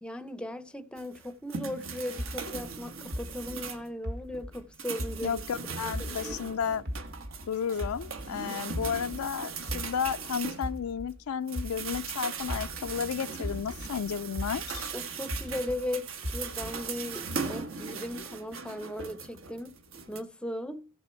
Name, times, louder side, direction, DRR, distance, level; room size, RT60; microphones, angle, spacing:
voice 1, 0.0-5.4 5.8-6.6 14.9-19.8 20.1-20.9, left 1 dB, 5° left, 0.6 m, -38 dB
sound 1, 1.0-3.9 4.3-11.1 11.5-20.2, right 5 dB, 65° right, 1.2 m, -39 dB
sound 2, 2.2-5.6 5.9-8.4 8.7-13.1 13.4-15.9 16.2-16.9, equal, 45° right, 1.1 m, -38 dB
voice 2, 5.2-6.8 7.5-14.9, left 7 dB, 80° left, 0.4 m, -33 dB
15.0 x 6.2 x 4.4 m
head